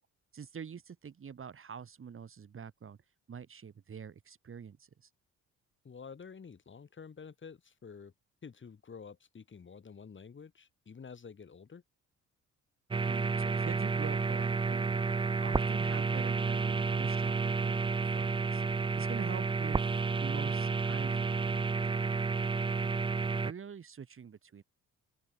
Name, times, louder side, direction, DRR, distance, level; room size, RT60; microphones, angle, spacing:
voice 1, 0.3-3.0 3.3-5.1 13.1-18.6 19.0-19.8 20.2-22.4 23.4-24.6, right 7 dB, 45° right, 2.8 m, -46 dB
voice 2, 5.8-8.1 8.4-11.8, left 6 dB, 40° left, 6.6 m, -49 dB
sound 1, 12.9-23.5, right 4 dB, 15° right, 0.5 m, -31 dB
open air
cardioid pair, 90°, 30 cm